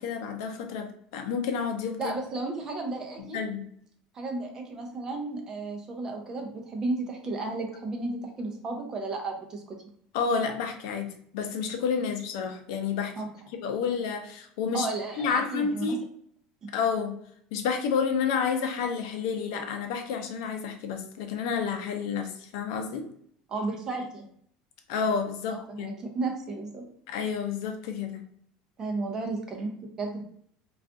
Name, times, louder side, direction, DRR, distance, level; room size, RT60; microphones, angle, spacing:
voice 1, 0.0-2.2 3.3-3.6 10.1-13.1 13.5-14.9 15.2-16.0 16.7-17.2 17.5-23.1 24.9-25.9 27.1-28.2, left 6 dB, 75° left, 5 dB, 0.5 m, -30 dB
voice 2, 2.0-3.4 4.1-9.8 13.2-13.3 14.7-16.0 16.6-16.7 23.5-24.2 25.5-26.8 28.8-30.2, right 3 dB, 20° right, 2 dB, 0.5 m, -33 dB
2.4 x 2.3 x 3.6 m, 0.64 s
cardioid pair, 165°, 3 cm